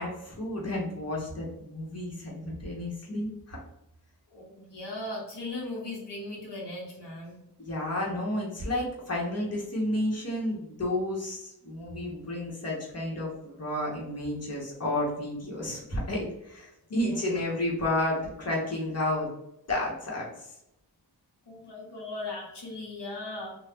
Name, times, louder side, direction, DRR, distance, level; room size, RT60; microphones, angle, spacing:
voice 1, 0.0-3.6 7.6-19.3 19.7-20.6, left 1 dB, 40° left, -4 dB, 1.2 m, -31 dB
voice 2, 4.3-7.4 16.9-17.1 21.5-23.6, left 2 dB, 85° left, -3 dB, 1.0 m, -38 dB
2.8 x 2.3 x 3.5 m, 0.82 s
wide cardioid pair, 65°, 40 cm